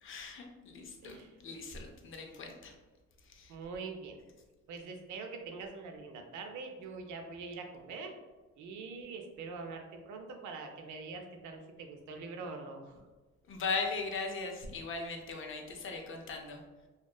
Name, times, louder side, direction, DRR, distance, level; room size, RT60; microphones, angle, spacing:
voice 1, 0.0-2.7 3.2-3.6 13.5-16.6, left 4 dB, 45° left, 2 dB, 0.5 m, -39 dB
voice 2, 1.0-1.6 3.5-4.2 4.7-8.2 8.6-13.0, right 4 dB, 75° right, 4 dB, 0.5 m, -44 dB
2.7 x 2.3 x 2.2 m, 1.3 s
cardioid pair, 90°, 30 cm